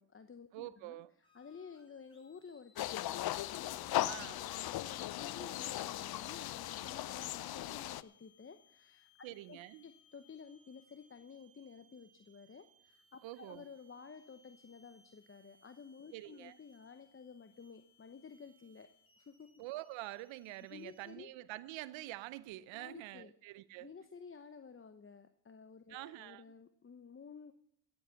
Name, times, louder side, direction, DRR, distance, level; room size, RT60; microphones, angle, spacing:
voice 1, 0.0-18.9 19.2-19.5 20.7-21.3 22.7-23.3 23.8-27.5, left 5 dB, 30° left, 0.9 m, -53 dB
voice 2, 0.5-1.1 4.1-4.4 9.2-9.8 13.2-13.6 16.1-16.5 19.6-23.9 25.9-26.4, right 17 dB, 80° right, 0.7 m, -46 dB
sound 1, 1.2-21.1, left 2 dB, 10° left, 5.1 m, -69 dB
sound 2, 2.8-8.0, left 14 dB, 55° left, 0.5 m, -38 dB
17.5 x 7.8 x 5.7 m
supercardioid pair, 50°, 45 cm